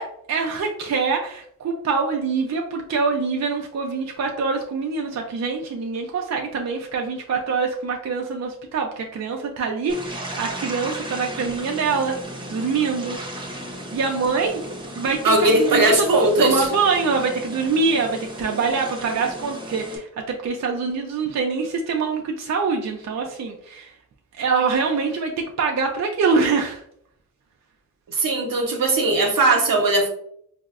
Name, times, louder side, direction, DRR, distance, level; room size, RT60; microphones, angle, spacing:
voice 1, 0.0-12.2 12.5-13.2 13.9-14.6 15.0-16.1 16.4-23.9 24.4-25.3 25.6-26.8, right 4 dB, 50° right, 2 dB, 0.4 m, -24 dB
sound 1, 9.9-20.0, equal, 15° right, 0.7 m, -35 dB
voice 2, 15.2-16.6 28.1-30.1, right 2 dB, 75° right, 2 dB, 0.8 m, -19 dB
4.2 x 2.0 x 2.3 m, 0.69 s
cardioid pair, 55°, 34 cm